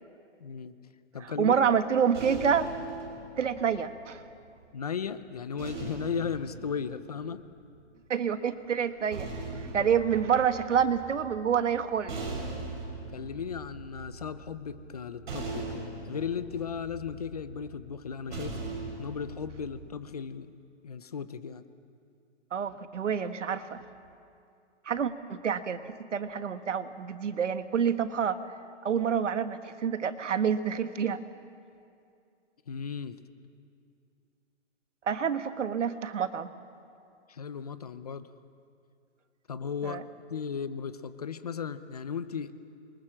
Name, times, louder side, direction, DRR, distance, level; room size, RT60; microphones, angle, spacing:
voice 1, 0.4-0.7 1.1-1.5 4.7-7.4 9.5-9.9 13.1-18.6 19.0-20.5 20.8-21.6 32.7-33.2 37.3-38.3 39.5-40.0 40.3-42.6, left 6 dB, 35° left, 13 dB, 0.8 m, -36 dB
voice 2, 1.2-2.7 3.4-4.2 8.1-9.3 9.7-12.1 22.5-23.8 24.9-25.8 26.1-28.4 28.8-31.2 35.1-36.5 39.8-40.0, right 7 dB, 85° right, 10 dB, 1.7 m, -27 dB
sound 1, 1.4-4.6 5.6-7.8 8.8-19.9, right 3 dB, 45° right, 7.0 m, -41 dB
27.0 x 23.0 x 7.5 m, 2.4 s
hypercardioid pair, 180°, 36 cm